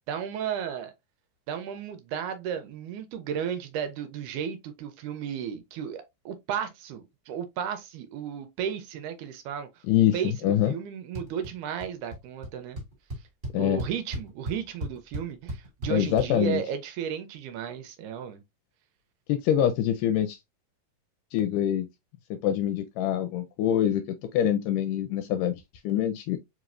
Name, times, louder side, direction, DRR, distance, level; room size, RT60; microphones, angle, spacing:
voice 1, 0.1-0.9 1.5-9.7 10.1-12.8 13.6-18.4, right 8 dB, 80° right, 2.0 m, -34 dB
voice 2, 9.9-10.8 13.5-13.8 15.9-16.6 19.3-20.4 21.3-21.9 22.3-26.4, left 11 dB, 80° left, 2.0 m, -25 dB
sound 1, 11.1-11.5 11.8-12.2 12.4-12.5 12.8-16.3, right 1 dB, 20° right, 1.3 m, -35 dB
4.7 x 3.0 x 2.4 m
omnidirectional pair, 3.8 m